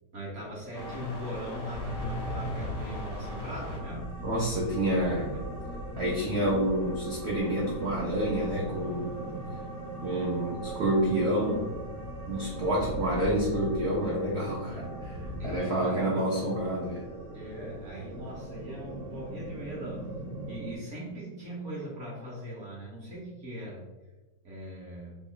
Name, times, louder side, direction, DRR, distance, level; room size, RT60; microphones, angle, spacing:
voice 1, 0.1-4.1 5.3-5.4 15.4-16.2 17.3-20.1 20.5-23.8 24.4-25.2, equal, 50° right, -4 dB, 1.0 m, -40 dB
sound 1, 0.7-20.6, left 1 dB, 40° left, 0.5 m, -46 dB
sound 2, 1.7-15.6, left 1 dB, 75° left, 0.8 m, -41 dB
voice 2, 4.2-5.4 6.0-9.2 10.0-11.7 12.3-15.2 15.4-17.0, right 1 dB, 70° right, -4 dB, 0.6 m, -28 dB
sound 3, 4.8-20.8, right 3 dB, 90° right, 1.3 m, -41 dB
3.1 x 2.4 x 3.7 m, 1.1 s
omnidirectional pair, 2.0 m